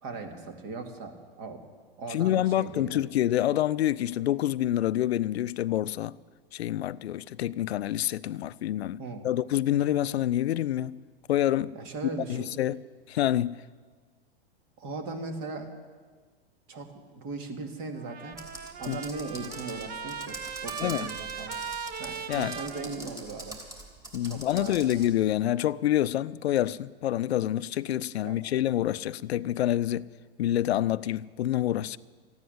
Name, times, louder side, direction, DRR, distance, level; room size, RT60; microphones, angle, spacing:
voice 1, 0.0-1.6 2.0-3.0 9.0-9.3 11.7-12.5 14.8-15.7 16.7-16.9 17.1-18.4 18.8-21.6 22.0-23.6 24.2-24.8 28.2-28.4, right 3 dB, 45° right, 2.5 m, -38 dB
voice 2, 2.1-6.2 6.5-11.0 11.3-11.8 12.3-13.6 18.9-19.0 20.8-21.1 22.3-22.5 24.1-30.1 30.4-32.0, left 12 dB, 80° left, 0.5 m, -27 dB
Trumpet, 18.0-23.6, right 7 dB, 30° right, 0.8 m, -39 dB
Computer keyboard, 18.3-25.1, right 1 dB, 10° right, 3.0 m, -44 dB
14.5 x 9.5 x 10.0 m
hypercardioid pair, 120°, 31 cm